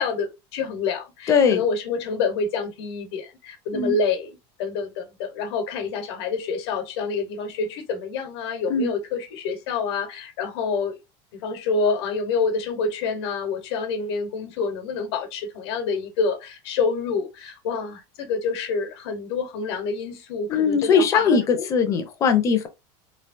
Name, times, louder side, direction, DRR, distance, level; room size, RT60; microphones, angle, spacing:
voice 1, 0.0-11.0 11.4-21.7, left 4 dB, 75° left, 1.1 m, -27 dB
voice 2, 1.3-1.6 3.7-4.0 8.7-8.9 20.5-22.7, left 5 dB, 25° left, 0.5 m, -20 dB
3.1 x 2.8 x 2.5 m
supercardioid pair, 170°, 14 cm